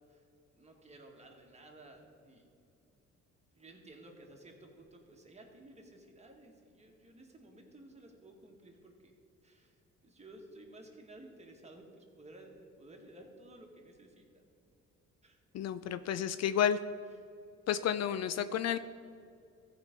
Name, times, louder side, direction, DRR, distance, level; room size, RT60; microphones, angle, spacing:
voice 1, 0.5-2.5 3.5-9.1 9.4-14.4 15.2-15.4 18.5-18.6, right 1 dB, 20° right, 1 dB, 1.8 m, -55 dB
voice 2, 15.5-16.8 17.7-18.8, left 9 dB, 60° left, 12 dB, 0.4 m, -31 dB
14.5 x 5.0 x 5.3 m, 2.4 s
cardioid pair, 90°, 30 cm